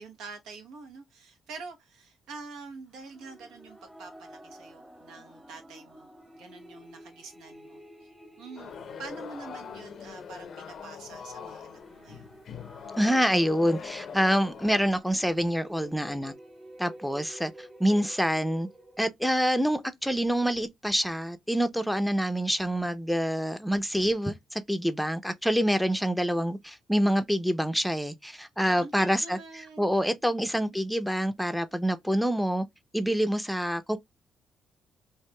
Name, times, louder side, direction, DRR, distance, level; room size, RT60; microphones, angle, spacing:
voice 1, 0.0-6.1 6.3-8.1 8.4-12.4 28.6-29.9, right 4 dB, 90° right, 1.0 m, -46 dB
sound 1, 3.0-19.0, right 1 dB, 15° right, 1.0 m, -51 dB
sound 2, 8.6-14.8, left 7 dB, 55° left, 0.5 m, -42 dB
voice 2, 13.0-16.3 16.8-18.7 19.0-29.4 29.8-32.6 32.9-34.0, equal, ahead, 0.5 m, -26 dB
4.4 x 2.5 x 2.2 m
cardioid pair, 90°, 0 cm